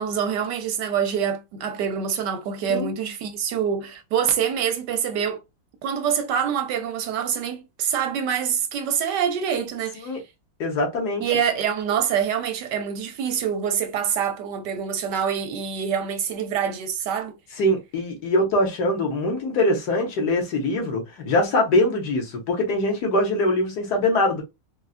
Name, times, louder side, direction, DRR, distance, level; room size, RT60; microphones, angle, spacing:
voice 1, 0.0-5.4 5.8-10.1 11.2-17.4, right 8 dB, 70° right, 1.2 m, -25 dB
voice 2, 10.6-11.2 17.6-24.4, left 1 dB, 60° left, 1.5 m, -23 dB
4.0 x 2.3 x 2.3 m
omnidirectional pair, 2.0 m